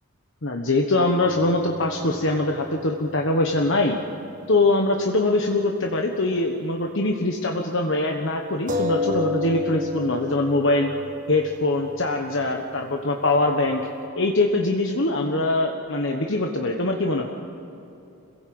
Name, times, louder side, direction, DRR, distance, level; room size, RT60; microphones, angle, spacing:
voice 1, 0.4-4.0 4.5-10.9 11.3-13.8 14.2-17.3, left 2 dB, 55° left, 2 dB, 1.3 m, -23 dB
sound 1, 1.2-5.1 5.4-5.5 8.7-13.9, left 2 dB, 35° right, 1.6 m, -33 dB
25.5 x 16.5 x 7.8 m, 2.8 s
head